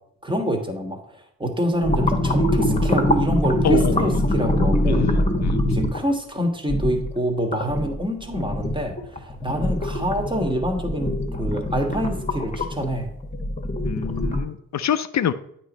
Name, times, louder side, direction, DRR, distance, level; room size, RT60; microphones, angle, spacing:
voice 1, 0.2-5.1 5.7-13.1, right 1 dB, 15° right, 3 dB, 1.6 m, -26 dB
sound 1, 1.8-6.1 6.7-8.0 8.3-14.4, left 1 dB, 20° left, 1.3 m, -23 dB
voice 2, 3.6-4.1 4.9-5.6 13.8-15.3, left 9 dB, 55° left, 12 dB, 0.5 m, -26 dB
8.6 x 3.1 x 5.2 m, 0.71 s
supercardioid pair, 40°, 34 cm